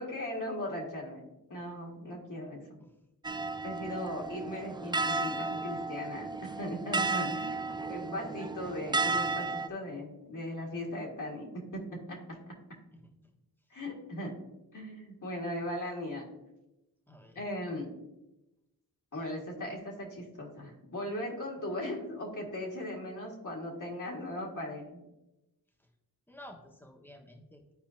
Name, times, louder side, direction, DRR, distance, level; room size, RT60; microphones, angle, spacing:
voice 1, 0.0-2.8 3.6-7.6 7.9-12.6 13.7-14.5 14.7-16.3 17.4-17.9 19.1-25.0, left 1 dB, 55° left, -2 dB, 2.0 m, -38 dB
sound 1, 3.2-9.7, right 3 dB, 15° right, 0.3 m, -33 dB
voice 2, 7.2-8.1 17.1-17.5 26.3-27.7, left 1 dB, 5° left, 1 dB, 1.3 m, -52 dB
11.5 x 4.5 x 2.7 m, 0.96 s
cardioid pair, 60°, 38 cm